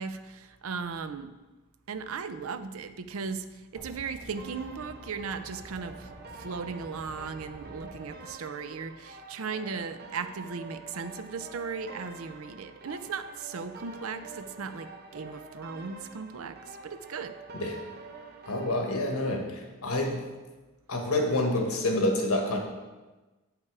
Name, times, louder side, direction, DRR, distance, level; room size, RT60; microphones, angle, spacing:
voice 1, 0.0-1.3 1.9-17.4, right 5 dB, 70° right, 11 dB, 0.5 m, -37 dB
sound 1, 3.7-8.1, equal, 5° right, 1.0 m, -49 dB
sound 2, 4.4-19.4, right 3 dB, 45° right, 0.9 m, -47 dB
voice 2, 18.5-20.2 20.9-22.6, left 1 dB, 90° left, 2 dB, 1.4 m, -28 dB
8.2 x 5.6 x 4.8 m, 1.2 s
head